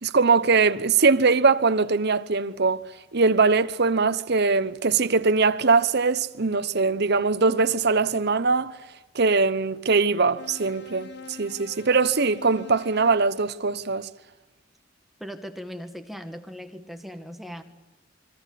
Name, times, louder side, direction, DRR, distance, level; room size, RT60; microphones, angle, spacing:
voice 1, 0.0-2.8 3.1-8.8 9.1-14.1, right 4 dB, 60° right, 1.0 m, -21 dB
sound 1, 10.4-13.3, left 4 dB, 60° left, 1.9 m, -44 dB
voice 2, 15.2-17.6, equal, ahead, 1.9 m, -38 dB
27.5 x 23.5 x 8.5 m
head